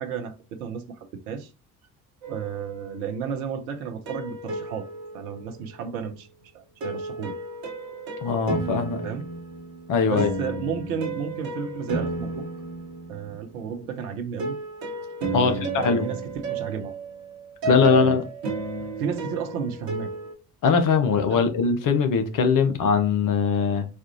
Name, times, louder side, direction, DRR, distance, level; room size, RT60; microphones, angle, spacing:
voice 1, 0.0-1.5 2.3-4.9 5.1-6.3 6.5-7.3 9.0-9.3 10.0-12.4 13.1-14.6 15.3-16.9 17.6-18.2 19.0-20.1 21.3-21.4, right 7 dB, 70° right, 0.7 m, -33 dB
sound 1, 2.2-3.2 4.1-5.9 6.8-13.5 14.4-20.3, right 2 dB, 55° right, 1.2 m, -33 dB
voice 2, 8.2-9.0 9.9-10.3 15.3-16.1 17.7-18.2 20.6-23.9, left 5 dB, 45° left, 0.8 m, -21 dB
4.2 x 2.4 x 2.8 m
figure-of-eight pair, 50°, 45 cm